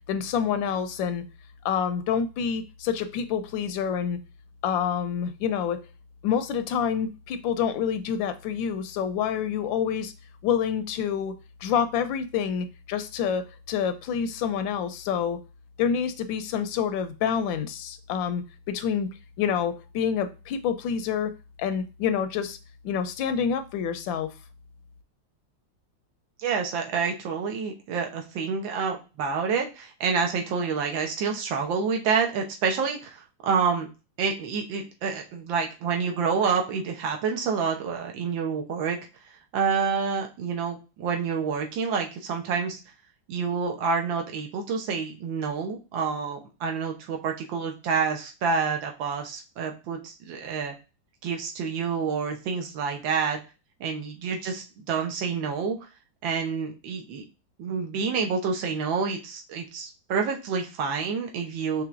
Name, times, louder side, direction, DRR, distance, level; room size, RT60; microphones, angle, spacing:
voice 1, 0.1-1.2 1.6-4.2 4.6-5.8 6.2-10.1 10.4-11.3 11.6-15.4 15.8-19.1 19.4-21.3 21.6-22.6 22.8-24.3, left 7 dB, 90° left, 10 dB, 1.4 m, -27 dB
voice 2, 26.4-33.9 34.2-39.0 39.5-42.8 43.3-50.7 51.2-53.4 53.8-55.8 56.2-57.2 57.6-61.8, right 5 dB, 85° right, 3 dB, 1.7 m, -28 dB
5.7 x 3.3 x 2.5 m, 0.30 s
omnidirectional pair, 2.0 m